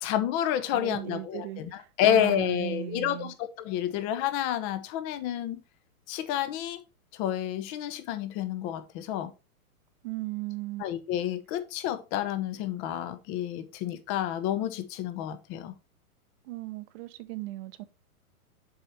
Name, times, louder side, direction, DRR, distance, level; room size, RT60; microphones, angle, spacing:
voice 1, 0.0-5.6 6.1-6.8 7.1-9.3 10.8-15.7, left 11 dB, 35° left, 1.3 m, -29 dB
voice 2, 0.7-3.3 10.0-10.8 16.4-17.8, right 16 dB, 45° right, 1.0 m, -37 dB
6.7 x 5.6 x 4.2 m
hypercardioid pair, 125°, 45 cm